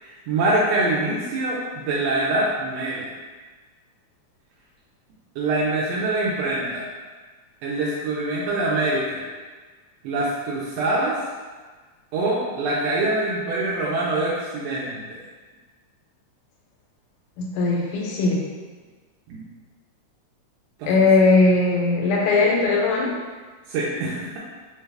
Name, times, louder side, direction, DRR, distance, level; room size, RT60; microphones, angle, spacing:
voice 1, 0.0-3.1 5.3-6.8 7.6-9.2 10.0-11.2 12.1-15.2 19.3-19.4 20.8-20.9 23.7-24.4, right 2 dB, 80° right, -6 dB, 1.5 m, -24 dB
voice 2, 17.4-18.4 20.9-23.1, left 3 dB, 90° left, -2 dB, 2.2 m, -19 dB
4.6 x 2.3 x 3.3 m, 1.4 s
omnidirectional pair, 3.4 m